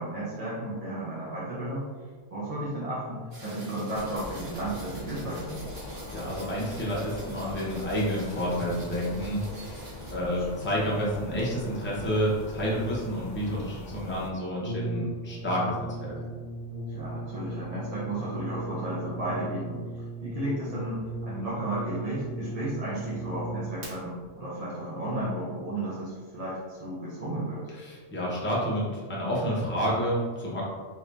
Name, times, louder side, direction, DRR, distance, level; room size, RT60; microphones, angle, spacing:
voice 1, 0.0-1.9 2.3-5.6 10.2-10.7 16.9-27.7, right 1 dB, 40° right, -8 dB, 0.7 m, -34 dB
sound 1, 3.3-10.1, right 1 dB, 85° right, 1.3 m, -45 dB
sound 2, 3.9-14.3, left 2 dB, 60° left, 0.5 m, -42 dB
voice 2, 5.8-16.1 27.8-30.6, equal, 10° left, -6 dB, 0.7 m, -30 dB
Brass instrument, 14.6-23.9, right 2 dB, 65° right, 1.4 m, -37 dB
3.0 x 2.7 x 3.3 m, 1.5 s
omnidirectional pair, 1.2 m